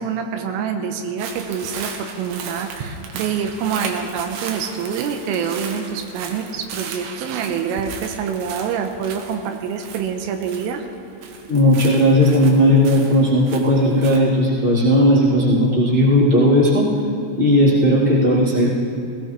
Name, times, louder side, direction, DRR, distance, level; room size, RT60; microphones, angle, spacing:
voice 1, 0.0-10.8, right 7 dB, 90° right, 5 dB, 3.4 m, -26 dB
sound 1, 1.2-10.9 11.2-14.2, right 5 dB, 75° right, 3.5 m, -35 dB
voice 2, 11.5-16.9 17.4-18.7, equal, 15° right, -8 dB, 2.8 m, -15 dB
19.0 x 18.0 x 3.3 m, 2.8 s
omnidirectional pair, 5.8 m